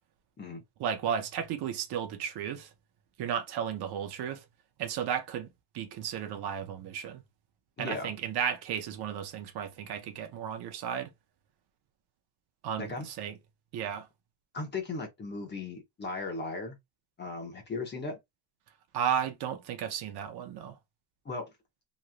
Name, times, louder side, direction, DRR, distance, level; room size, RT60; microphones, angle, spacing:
voice 1, 0.8-2.7 3.2-4.4 4.8-5.5 5.7-7.2 7.8-11.1 12.6-13.3 13.7-14.1 18.9-20.8, right 8 dB, 55° right, 0.6 m, -34 dB
voice 2, 7.8-8.1 12.8-13.1 14.5-16.8 17.2-18.2 21.2-21.5, left 3 dB, 25° left, 0.8 m, -37 dB
3.0 x 2.5 x 2.4 m
cardioid pair, 170°, 47 cm